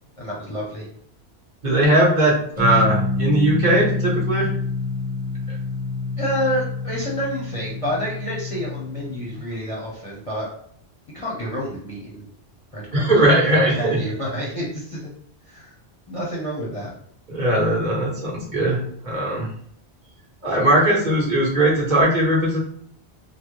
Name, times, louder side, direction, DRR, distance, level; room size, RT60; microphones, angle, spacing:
voice 1, 0.2-0.9 6.2-10.5 11.1-12.3 12.7-15.0 15.5-15.7 16.1-16.9, equal, 35° left, -4 dB, 0.7 m, -29 dB
voice 2, 1.6-4.5 12.9-14.0 17.3-19.5 20.4-22.6, right 1 dB, 45° right, -4 dB, 1.1 m, -19 dB
sound 1, 2.6-9.4, left 3 dB, 10° right, 0.8 m, -27 dB
3.5 x 2.0 x 3.0 m, 0.66 s
omnidirectional pair, 1.1 m